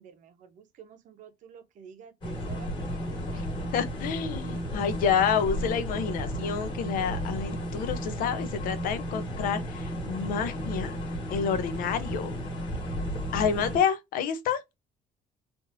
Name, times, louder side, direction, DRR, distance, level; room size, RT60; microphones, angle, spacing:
voice 1, 0.0-3.7, right 8 dB, 60° right, 0.8 m, -51 dB
sound 1, 2.2-13.8, equal, 35° left, 1.7 m, -33 dB
voice 2, 3.7-11.0 11.3-12.4 13.3-14.6, left 7 dB, 75° left, 0.7 m, -29 dB
3.6 x 2.6 x 2.6 m
cardioid pair, 155°, 14 cm